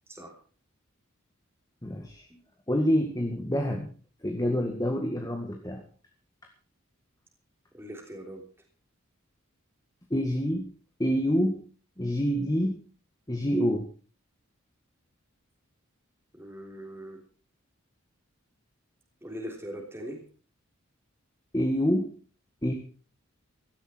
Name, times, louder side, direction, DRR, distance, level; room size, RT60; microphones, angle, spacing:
voice 1, 1.8-2.3 2.7-3.9 4.2-5.8 10.1-10.7 11.0-11.6 12.0-12.8 13.3-13.9 21.5-22.1 22.6-22.7, equal, 15° left, 3 dB, 1.9 m, -27 dB
voice 2, 7.7-8.4 16.3-17.2 19.2-20.2, equal, 10° right, 1 dB, 3.3 m, -40 dB
16.5 x 13.0 x 4.5 m, 0.38 s
head